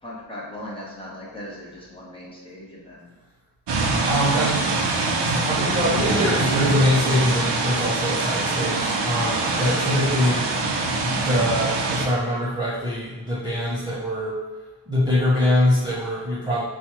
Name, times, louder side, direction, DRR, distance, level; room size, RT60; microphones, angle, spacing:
voice 1, 0.0-3.1 4.3-4.6, left 1 dB, 10° left, -6 dB, 0.9 m, -38 dB
sound 1, 3.7-12.1, right 3 dB, 75° right, 0.8 m, -24 dB
voice 2, 4.0-4.6 5.3-10.5 11.0-14.4 14.9-16.6, left 1 dB, 10° right, -8 dB, 0.7 m, -23 dB
4.4 x 2.4 x 4.3 m, 1.3 s
wide cardioid pair, 170°, 43 cm